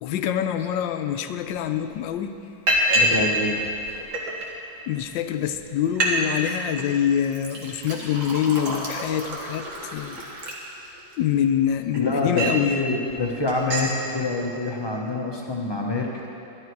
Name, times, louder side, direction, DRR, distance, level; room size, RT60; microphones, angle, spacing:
voice 1, 0.0-2.3 4.9-10.2 11.2-12.9, left 9 dB, 75° left, 9 dB, 1.3 m, -25 dB
Liquid, 1.5-1.6 1.9-2.2 2.7-3.3 3.6-4.5 5.1-5.2 5.5-5.6 5.8-6.1 6.4-6.8 7.3-11.1 11.7-12.7 13.1-13.2 13.5-13.9, equal, 85° right, 2.4 m, -27 dB
voice 2, 2.9-3.7 11.9-16.3, left 3 dB, 30° left, -1 dB, 0.5 m, -26 dB
12.5 x 12.0 x 4.6 m, 2.8 s
omnidirectional pair, 2.1 m